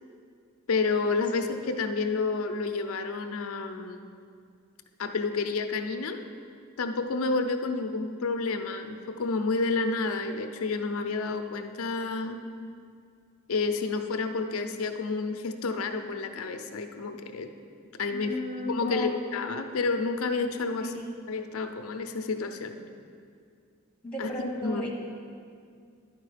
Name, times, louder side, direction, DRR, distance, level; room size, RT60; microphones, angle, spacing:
voice 1, 0.7-4.1 5.0-6.2 6.8-12.4 13.5-17.5 18.0-18.4 18.7-20.9 21.3-22.8 24.2-24.3 24.6-24.9, left 4 dB, 85° left, 7 dB, 0.6 m, -30 dB
voice 2, 18.1-19.1 20.8-21.1 24.0-24.9, left 1 dB, 5° left, -2 dB, 1.0 m, -34 dB
11.0 x 4.7 x 4.9 m, 2.3 s
head